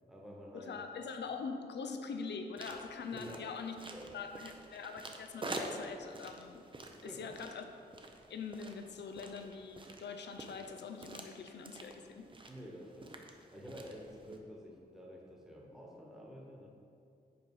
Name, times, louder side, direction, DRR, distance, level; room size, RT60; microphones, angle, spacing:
voice 1, 0.0-0.7 3.1-3.5 3.9-4.1 7.0-7.3 12.5-16.7, equal, ahead, -3 dB, 1.2 m, -49 dB
voice 2, 0.5-3.8 4.1-6.7 7.0-7.7 8.3-12.3, left 5 dB, 80° left, 6 dB, 0.5 m, -43 dB
sound 1, 2.6-14.4, right 2 dB, 30° right, 0.6 m, -48 dB
5.5 x 4.3 x 4.8 m, 2.4 s
cardioid pair, 75°, 18 cm